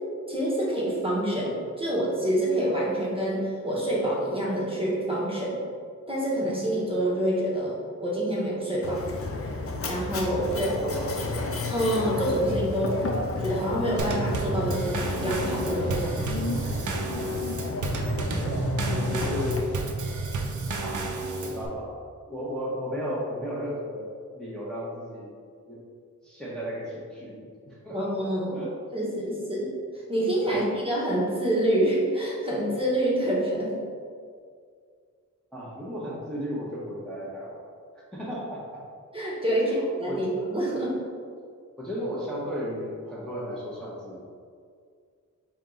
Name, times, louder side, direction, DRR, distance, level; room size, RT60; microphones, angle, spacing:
voice 1, 0.3-5.6 6.1-7.7 8.0-9.0 9.8-10.7 11.7-13.0 13.4-16.5 18.9-19.1 27.9-28.6 28.9-29.7 30.1-33.7 39.1-40.9, right 1 dB, 20° right, -5 dB, 1.0 m, -27 dB
Mechanisms, 8.8-19.6, left 3 dB, 45° left, 0.5 m, -32 dB
voice 2, 10.5-11.5 18.3-18.7 19.1-19.6 20.8-21.0 21.4-22.0 22.3-25.3 25.7-25.8 26.2-28.1 28.5-28.7 30.4-30.6 35.5-37.7 38.1-38.9 39.6-40.2 41.8-44.2, equal, ahead, -8 dB, 0.9 m, -35 dB
Drum kit / Snare drum / Bass drum, 14.0-21.7, right 2 dB, 70° right, 0.5 m, -31 dB
3.6 x 2.9 x 3.7 m, 2.1 s
wide cardioid pair, 70°, 31 cm